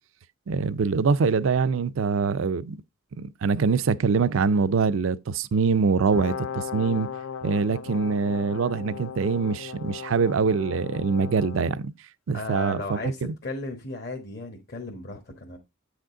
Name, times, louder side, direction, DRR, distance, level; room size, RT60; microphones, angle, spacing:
voice 1, 0.5-2.8 3.1-7.1 7.4-11.9 12.3-13.3, right 5 dB, 65° right, 0.4 m, -24 dB
Brass instrument, 6.0-11.8, left 7 dB, 70° left, 0.5 m, -37 dB
voice 2, 12.3-15.6, left 2 dB, 50° left, 1.3 m, -35 dB
8.5 x 5.1 x 3.6 m
head